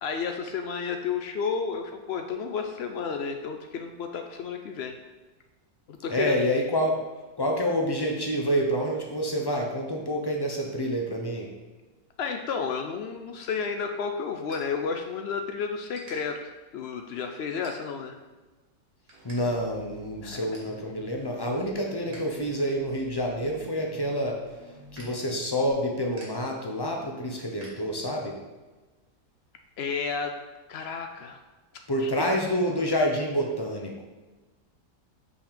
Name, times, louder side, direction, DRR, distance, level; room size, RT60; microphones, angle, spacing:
voice 1, 0.0-5.0 5.9-6.3 12.2-16.4 16.7-18.2 20.2-20.4 29.8-30.4 30.7-31.4, left 6 dB, 90° left, 5 dB, 0.5 m, -31 dB
voice 2, 6.1-7.0 7.4-11.5 19.2-24.4 24.9-28.4 31.9-34.0, equal, 35° left, 0 dB, 0.4 m, -28 dB
sound 1, 13.6-15.4 15.9-16.1 16.7-16.9 17.6-18.2 18.6-19.4 19.7-19.8 20.1-20.8 21.2-22.3 22.6-28.4, right 1 dB, 60° right, 2.0 m, -52 dB
sound 2, 19.1-25.7, right 3 dB, 85° right, 1.6 m, -48 dB
5.8 x 4.1 x 5.1 m, 1.2 s
omnidirectional pair, 1.7 m